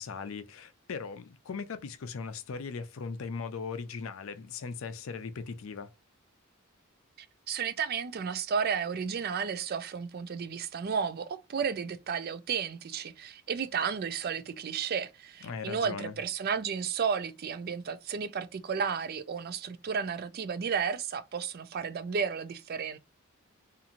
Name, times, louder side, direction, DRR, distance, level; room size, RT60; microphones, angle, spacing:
voice 1, 0.0-5.9 15.4-16.1, left 5 dB, 70° left, 0.5 m, -39 dB
voice 2, 7.5-23.0, right 6 dB, 45° right, 0.4 m, -33 dB
2.9 x 2.5 x 2.4 m
head